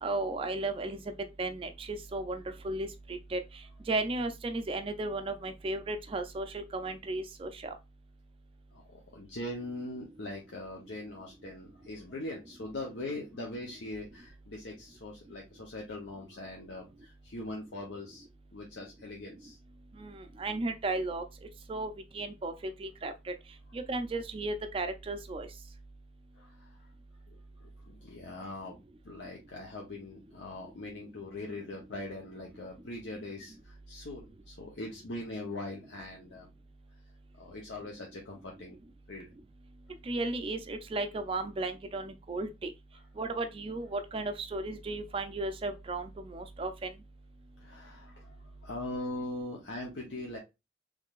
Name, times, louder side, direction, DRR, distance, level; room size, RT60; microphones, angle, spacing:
voice 1, 0.0-1.0 1.4-3.4 3.9-7.7 20.0-21.2 21.7-23.3 23.7-25.5 40.0-42.7 43.2-46.9, right 2 dB, 30° right, 0.4 m, -35 dB
voice 2, 8.7-18.2 18.5-19.6 26.4-26.8 27.6-28.8 29.0-36.5 37.3-38.8 39.1-39.3 47.6-50.4, left 2 dB, 80° left, 0.8 m, -41 dB
3.6 x 3.2 x 2.4 m
head